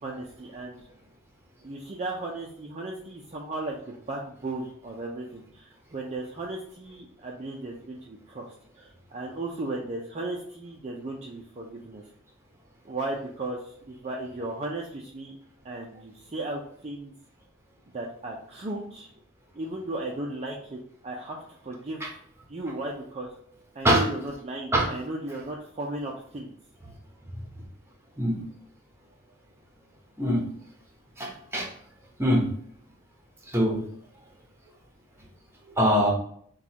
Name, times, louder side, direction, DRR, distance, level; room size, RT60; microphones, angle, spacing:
voice 1, 0.0-0.8 1.6-8.5 8.7-12.0 12.8-15.4 15.6-17.1 17.9-19.1 19.5-22.1 22.5-23.3 23.7-26.5, right 2 dB, 35° right, -2 dB, 0.5 m, -35 dB
voice 2, 31.2-31.7 32.2-32.4 33.5-33.8 35.8-36.1, equal, 15° right, 0 dB, 0.9 m, -22 dB
6.1 x 2.3 x 2.8 m, 0.63 s
head